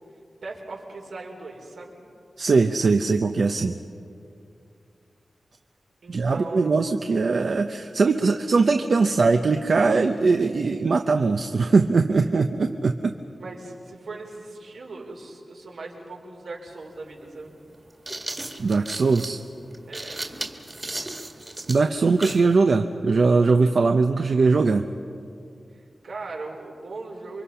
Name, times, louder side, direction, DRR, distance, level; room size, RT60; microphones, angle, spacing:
voice 1, 0.4-2.0 6.0-6.7 13.4-17.6 19.9-20.3 25.7-27.4, right 3 dB, 85° right, -1 dB, 4.5 m, -39 dB
voice 2, 2.4-3.8 6.1-13.1 18.6-19.4 21.7-24.9, right 4 dB, 65° right, 6 dB, 0.8 m, -21 dB
sound 1, 16.7-16.8 17.7-22.5, right 2 dB, 25° right, 1.8 m, -35 dB
28.5 x 24.5 x 5.7 m, 2.5 s
wide cardioid pair, 120°, 0 cm